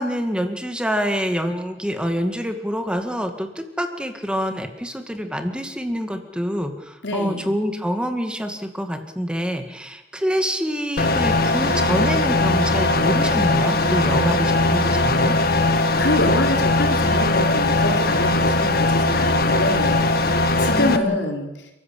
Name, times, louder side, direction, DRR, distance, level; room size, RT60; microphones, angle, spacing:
voice 1, 0.0-15.4 20.7-21.2, equal, 5° right, 6 dB, 2.1 m, -26 dB
voice 2, 7.0-7.5 15.7-20.0 20.6-21.5, left 2 dB, 85° left, 2 dB, 4.6 m, -25 dB
sound 1, 11.0-21.0, left 2 dB, 60° left, 1.7 m, -19 dB
29.5 x 14.5 x 8.6 m, 0.99 s
head